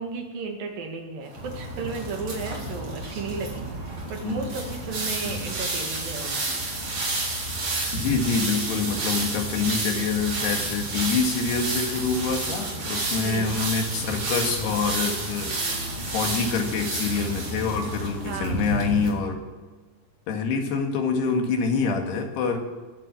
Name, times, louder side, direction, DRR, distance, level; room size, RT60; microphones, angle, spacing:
voice 1, 0.0-6.6 13.1-13.5 15.4-15.9 18.3-18.6, right 4 dB, 65° right, 3 dB, 3.6 m, -34 dB
sound 1, 1.3-19.1, right 2 dB, 45° right, 5.1 m, -30 dB
voice 2, 7.9-15.7 16.1-19.4 20.3-22.6, left 5 dB, 90° left, 3 dB, 4.1 m, -26 dB
21.5 x 7.8 x 8.4 m, 1.4 s
omnidirectional pair, 4.6 m